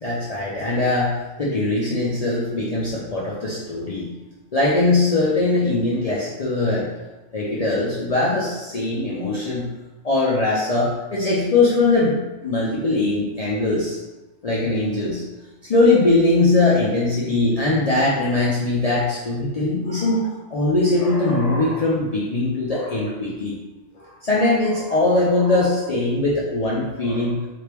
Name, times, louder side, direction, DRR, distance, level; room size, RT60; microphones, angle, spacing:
voice 1, 0.0-4.1 4.5-6.9 7.3-9.7 10.0-14.0 14.4-15.2 15.7-23.6 24.0-27.4, left 2 dB, 70° left, -6 dB, 0.3 m, -21 dB
3.3 x 2.5 x 3.0 m, 1.1 s
omnidirectional pair, 1.3 m